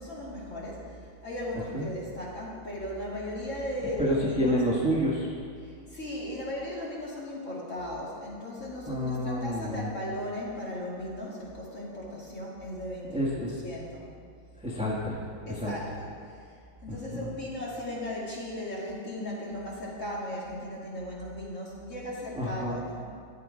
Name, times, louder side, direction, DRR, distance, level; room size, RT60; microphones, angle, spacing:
voice 1, 0.0-4.6 5.6-13.3 13.6-14.0 15.5-16.1 16.8-23.0, left 1 dB, 40° left, -5 dB, 2.7 m, -37 dB
voice 2, 4.0-5.3 8.9-9.9 13.1-13.6 14.6-15.2 15.5-15.8 16.9-17.3 22.4-22.8, equal, 5° right, -4 dB, 1.1 m, -29 dB
12.5 x 9.6 x 5.0 m, 2.2 s
omnidirectional pair, 2.1 m